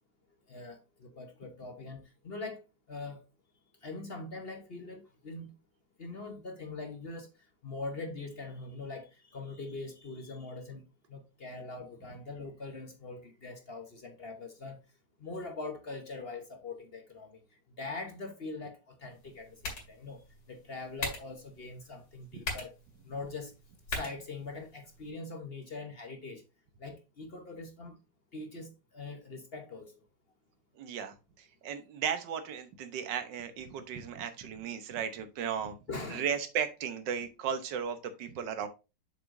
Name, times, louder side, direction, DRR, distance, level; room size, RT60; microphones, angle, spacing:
voice 1, 0.5-2.6 2.9-3.2 3.8-5.5 6.0-7.3 7.6-10.8 11.1-14.8 15.2-17.4 17.8-20.2 20.5-22.7 23.0-23.5 23.9-26.4 26.8-27.9 28.3-29.9 35.9-36.3, left 3 dB, 40° left, 1.0 m, -42 dB
sound 1, 19.1-25.1, left 3 dB, 80° left, 2.8 m, -43 dB
voice 2, 30.8-35.8 36.1-38.7, right 7 dB, 80° right, 1.6 m, -35 dB
7.3 x 6.2 x 2.6 m
omnidirectional pair, 1.9 m